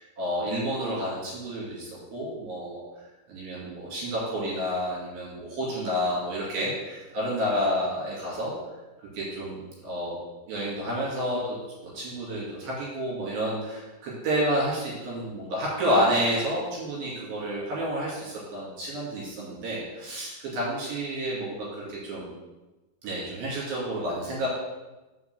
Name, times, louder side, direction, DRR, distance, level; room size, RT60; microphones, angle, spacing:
voice 1, 0.0-2.8 3.3-8.5 9.1-10.2 10.5-11.6 11.8-22.3 23.0-24.5, equal, 60° right, -6 dB, 4.0 m, -30 dB
6.2 x 5.7 x 6.9 m, 1.1 s
omnidirectional pair, 5.0 m